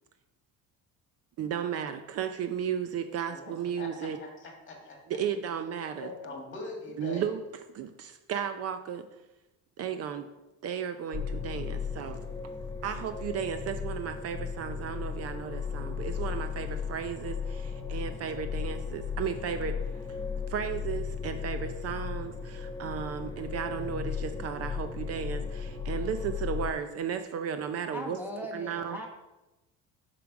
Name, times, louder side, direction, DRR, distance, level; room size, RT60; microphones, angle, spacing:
voice 1, 1.4-4.2 5.1-6.1 7.0-7.4 7.7-9.1 9.8-10.3 10.6-12.2 12.8-19.8 20.5-28.2 28.5-29.0, right 7 dB, 45° right, 8 dB, 0.6 m, -34 dB
voice 2, 3.3-5.0 6.0-7.3, left 2 dB, 35° left, 0 dB, 2.1 m, -42 dB
sound 1, 11.1-26.7, left 6 dB, 10° left, 0.6 m, -36 dB
voice 3, 27.9-29.1, equal, 5° right, -1 dB, 1.0 m, -39 dB
7.0 x 5.0 x 6.1 m, 0.99 s
cardioid pair, 160°, 34 cm